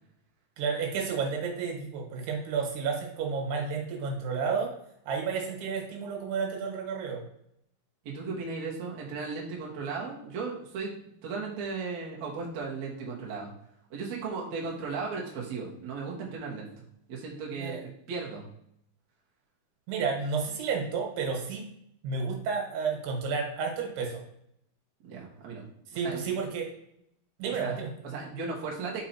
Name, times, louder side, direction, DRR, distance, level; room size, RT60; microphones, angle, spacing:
voice 1, 0.6-4.7 5.1-7.2 17.6-17.8 19.9-21.6 22.0-24.2 25.9-26.7 27.4-27.9, right 5 dB, 85° right, 1 dB, 3.4 m, -31 dB
voice 2, 8.0-10.9 11.2-13.5 13.9-16.7 17.1-18.5 25.0-25.6 25.9-26.2 27.6-27.7 28.0-29.0, right 4 dB, 55° right, -3 dB, 2.2 m, -36 dB
5.7 x 4.6 x 4.3 m, 0.75 s
omnidirectional pair, 4.6 m